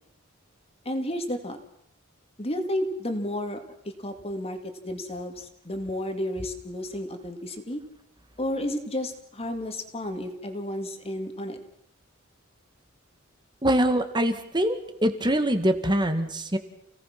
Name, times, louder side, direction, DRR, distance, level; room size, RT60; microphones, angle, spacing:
voice 1, 0.8-1.6 2.4-4.6 4.8-7.8 8.4-11.6, left 1 dB, 30° left, 6 dB, 2.5 m, -32 dB
voice 2, 13.6-16.6, right 1 dB, 20° right, 8 dB, 1.9 m, -24 dB
29.0 x 18.0 x 6.0 m, 0.78 s
head